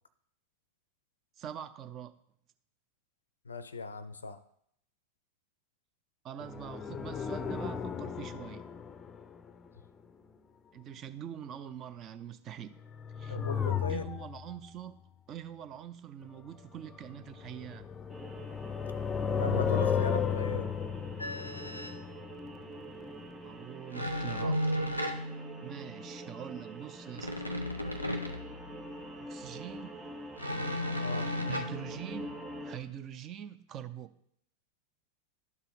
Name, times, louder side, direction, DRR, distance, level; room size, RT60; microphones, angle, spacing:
voice 1, 1.4-2.1 6.2-8.6 10.7-12.8 13.2-13.4 13.9-15.0 15.3-17.9 23.4-24.6 25.6-27.3 29.2-30.0 31.2-34.1, right 10 dB, 30° right, 12 dB, 0.5 m, -44 dB
voice 2, 3.5-4.4 13.3-14.1 19.4-20.7 31.0-31.3, left 3 dB, 75° left, 15 dB, 0.5 m, -37 dB
sound 1, 6.4-9.5 12.8-14.6 16.9-23.0 23.2-23.3, left 7 dB, 20° left, 0.5 m, -34 dB
sound 2, 18.1-32.8, right 1 dB, 5° right, 1.1 m, -46 dB
sound 3, 21.2-22.0 23.9-25.9 27.1-28.9 30.4-32.3, left 1 dB, 90° right, 0.7 m, -35 dB
12.0 x 4.0 x 3.9 m, 0.70 s
figure-of-eight pair, 90°, 0 cm